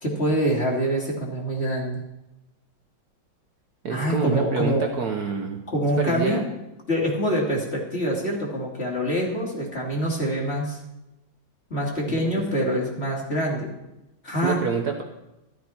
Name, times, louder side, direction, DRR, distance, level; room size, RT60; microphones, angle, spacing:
voice 1, 0.0-2.0 3.9-4.8 5.7-6.5 6.9-10.8 11.7-13.7 14.2-14.6, equal, 30° left, -2 dB, 2.9 m, -25 dB
voice 2, 3.8-5.6 6.0-6.5 12.1-12.3 14.4-15.0, right 5 dB, 55° right, 3 dB, 1.4 m, -27 dB
13.5 x 13.5 x 4.4 m, 0.94 s
omnidirectional pair, 2.3 m